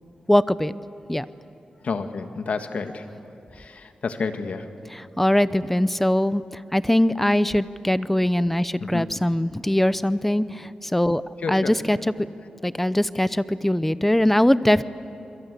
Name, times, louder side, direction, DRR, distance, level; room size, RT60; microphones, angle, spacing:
voice 1, 0.3-0.7 1.1-1.3 4.9-6.4 6.7-11.2 11.5-12.0 12.6-14.8, left 1 dB, 10° left, 15 dB, 0.7 m, -21 dB
voice 2, 1.8-3.0 3.5-4.7 8.8-9.1 11.4-11.7, left 4 dB, 65° left, 7 dB, 1.7 m, -30 dB
27.5 x 23.0 x 8.3 m, 2.8 s
cardioid pair, 75°, 2 cm